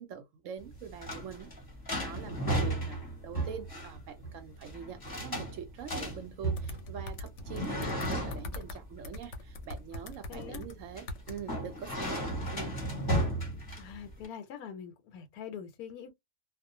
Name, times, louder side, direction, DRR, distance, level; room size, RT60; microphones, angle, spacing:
voice 1, 0.0-1.5 1.9-12.7, right 8 dB, 70° right, 0.9 m, -44 dB
sound 1, 0.6-14.3, right 1 dB, 20° left, 0.7 m, -35 dB
sound 2, 6.6-8.8 9.0-10.7 11.1-11.4, left 2 dB, 65° left, 0.8 m, -41 dB
voice 2, 10.3-10.6 13.8-16.1, left 8 dB, 85° left, 1.1 m, -44 dB
2.4 x 2.1 x 2.6 m
omnidirectional pair, 1.5 m